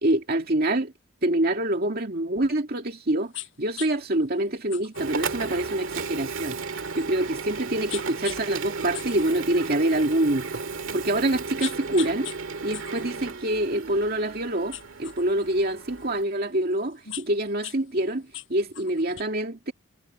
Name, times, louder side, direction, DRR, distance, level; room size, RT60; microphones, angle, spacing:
voice 1, 0.0-0.9 1.2-3.3 3.6-6.6 6.9-10.5 10.9-12.3 12.6-19.7, right 1 dB, 50° right, 2.3 m, -26 dB
sound 1, 3.3-3.5 3.8-3.9 4.7-7.4 7.9-8.4 8.8-10.1 10.7-10.8 11.3-12.4 12.7-14.3 14.7-16.0 16.7-17.8 18.1-19.2, left 15 dB, 70° left, 5.2 m, -40 dB
Printer, 4.9-16.2, right 4 dB, 90° right, 1.8 m, -34 dB
head